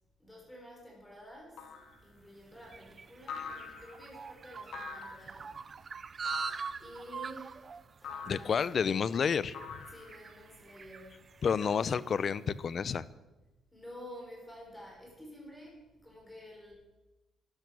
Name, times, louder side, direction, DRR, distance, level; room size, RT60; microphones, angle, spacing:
voice 1, 0.2-1.7 2.0-5.8 6.8-8.6 9.9-11.2 13.7-16.7, equal, 10° left, -2 dB, 5.7 m, -50 dB
sound 1, 1.6-2.0 3.3-4.1 4.7-5.3 6.2-6.8 8.0-8.6 9.5-10.3, left 6 dB, 75° left, 2.2 m, -43 dB
sound 2, 2.0-12.6, right 5 dB, 40° right, 0.6 m, -44 dB
voice 2, 8.3-9.6 11.4-13.0, left 6 dB, 50° left, 18 dB, 0.6 m, -30 dB
13.0 x 12.0 x 6.2 m, 1.1 s
cardioid pair, 90°, 0 cm